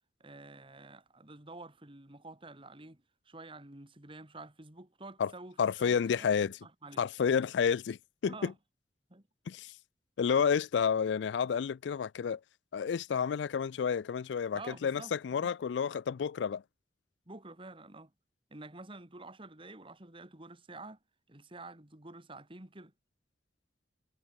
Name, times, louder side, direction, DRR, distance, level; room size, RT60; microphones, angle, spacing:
voice 1, 0.2-7.0 8.2-8.5 9.1-9.3 14.5-15.5 17.3-18.1 18.5-21.0 21.3-22.9, right 2 dB, 30° right, 2.4 m, -49 dB
voice 2, 5.6-6.6 7.0-8.5 9.5-9.7 10.2-12.4 12.7-16.6, left 7 dB, 85° left, 0.4 m, -30 dB
head